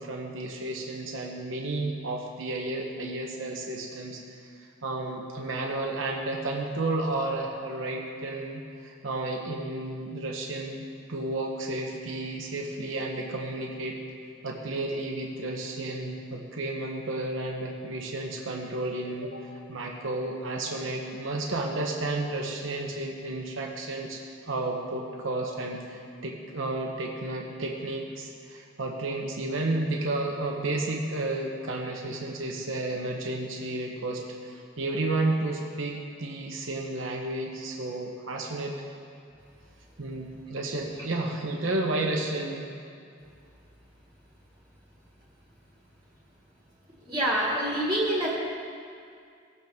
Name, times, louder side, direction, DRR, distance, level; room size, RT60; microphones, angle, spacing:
voice 1, 0.0-14.0 14.4-24.2 24.4-38.7 40.0-42.7, right 2 dB, 80° right, 0 dB, 1.0 m, -32 dB
voice 2, 47.0-48.3, right 1 dB, 25° right, -6 dB, 1.9 m, -26 dB
19.0 x 8.0 x 3.6 m, 2.3 s
head